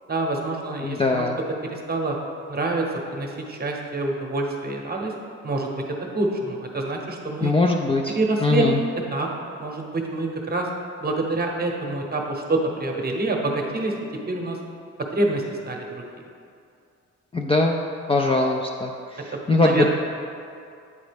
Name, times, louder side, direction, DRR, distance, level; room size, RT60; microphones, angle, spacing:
voice 1, 0.1-1.3 1.7-2.2 2.5-2.9 3.1-5.1 5.4-5.8 6.1-7.5 8.2-8.6 9.1-9.3 9.6-10.7 11.0-13.9 14.3-14.6 15.1-16.2 18.2-18.4 19.6-19.8, right 2 dB, 30° right, 1 dB, 0.9 m, -26 dB
voice 2, 0.8-1.4 7.4-8.8 17.3-17.8 18.1-19.9, left 2 dB, 20° left, 1 dB, 0.3 m, -22 dB
8.5 x 3.9 x 3.4 m, 2.5 s
cardioid pair, 90°, 30 cm